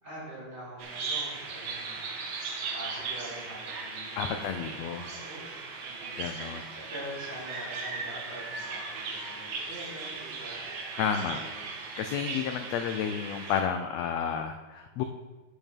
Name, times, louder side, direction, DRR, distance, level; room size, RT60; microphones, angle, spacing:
voice 1, 0.0-2.0 2.7-11.0 11.3-11.7, equal, 20° right, -7 dB, 4.1 m, -45 dB
Bird vocalization bird call bird song, 0.8-13.6, right 4 dB, 70° right, 2.6 m, -38 dB
voice 2, 4.2-5.1 6.2-6.7 11.0-11.4 12.0-15.0, left 7 dB, 80° left, 7 dB, 1.5 m, -31 dB
10.5 x 10.5 x 3.6 m, 1.3 s
omnidirectional pair, 3.6 m